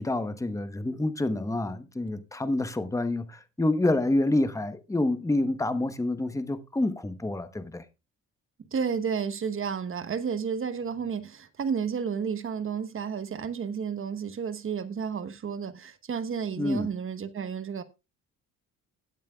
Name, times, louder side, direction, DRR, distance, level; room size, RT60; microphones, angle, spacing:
voice 1, 0.0-7.8 16.6-16.9, left 2 dB, 10° left, 1.1 m, -28 dB
voice 2, 8.7-17.8, right 6 dB, 45° right, 1.1 m, -31 dB
17.0 x 8.9 x 2.4 m
cardioid pair, 90°, 30 cm